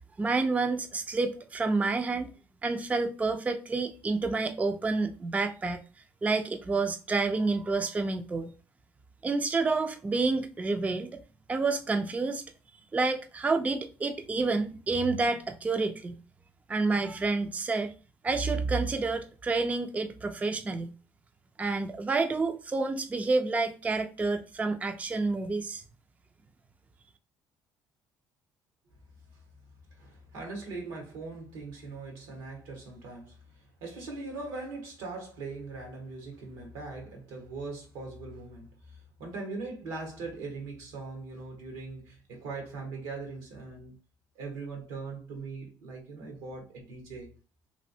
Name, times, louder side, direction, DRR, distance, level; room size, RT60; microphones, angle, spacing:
voice 1, 0.2-2.3 2.6-5.8 6.2-8.5 9.2-11.2 11.5-12.4 12.9-16.2 16.7-17.9 18.2-21.0 21.6-25.8, right 3 dB, 20° right, 0.3 m, -29 dB
voice 2, 30.0-44.0 44.3-47.3, right 3 dB, 85° right, 1.2 m, -41 dB
3.2 x 2.6 x 2.6 m
supercardioid pair, 80°, 8 cm